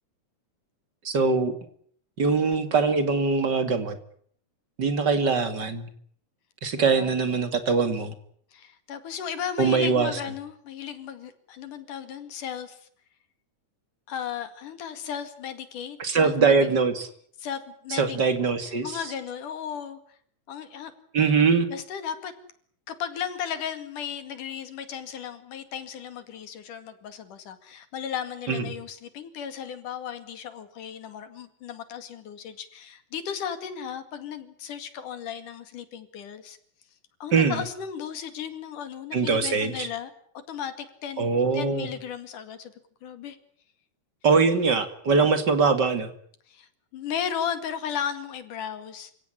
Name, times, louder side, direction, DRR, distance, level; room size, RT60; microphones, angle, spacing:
voice 1, 1.0-1.5 2.2-4.0 4.8-5.9 6.6-8.1 9.6-10.1 16.0-17.1 17.9-19.0 21.1-21.7 28.5-28.6 37.3-37.6 39.1-39.9 41.2-41.9 44.2-46.1, right 4 dB, 35° right, 9 dB, 2.5 m, -22 dB
voice 2, 8.5-12.9 14.1-16.7 17.4-18.2 18.6-20.2 20.5-20.9 21.7-22.3 22.9-36.6 37.2-40.1 40.5-41.3 41.5-42.7 43.0-43.4 46.5-49.1, left 8 dB, 75° left, 10 dB, 3.7 m, -35 dB
28.0 x 17.0 x 10.0 m, 0.62 s
omnidirectional pair, 3.7 m